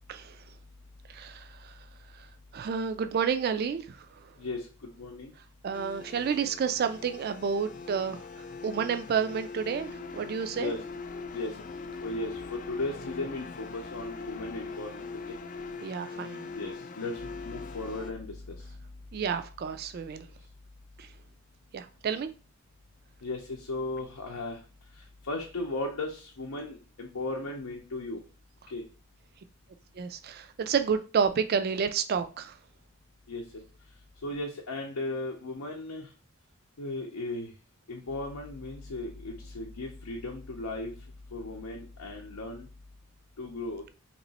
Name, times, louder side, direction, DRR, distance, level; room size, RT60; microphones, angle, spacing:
voice 1, 1.1-1.7 2.5-4.1 5.6-8.2 8.6-10.7 15.8-16.5 19.1-20.3 21.0-21.1 21.7-22.3 30.0-32.5, right 6 dB, 45° right, 0.3 m, -30 dB
voice 2, 4.4-5.3 6.2-6.3 10.5-10.8 11.3-11.6 12.0-15.4 16.5-19.0 23.2-24.6 25.0-28.2 28.7-28.8 33.3-33.6 34.2-36.1 36.8-37.5 37.9-41.0 41.3-42.7 43.4-43.9, left 2 dB, 85° left, 0.6 m, -36 dB
sound 1, 5.7-18.1, left 4 dB, 35° left, 0.3 m, -42 dB
3.0 x 2.9 x 4.0 m
head